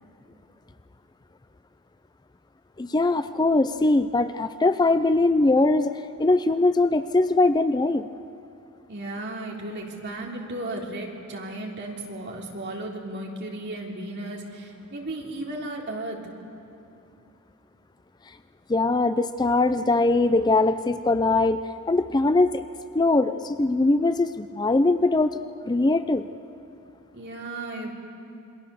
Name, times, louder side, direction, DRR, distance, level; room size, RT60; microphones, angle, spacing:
voice 1, 2.8-8.1 18.7-21.6 21.9-22.7 22.9-25.4 25.6-26.3, left 2 dB, 20° left, 11 dB, 0.5 m, -21 dB
voice 2, 8.9-16.2 27.1-27.9, right 2 dB, 50° right, -1 dB, 3.4 m, -35 dB
27.5 x 22.0 x 6.9 m, 2.7 s
head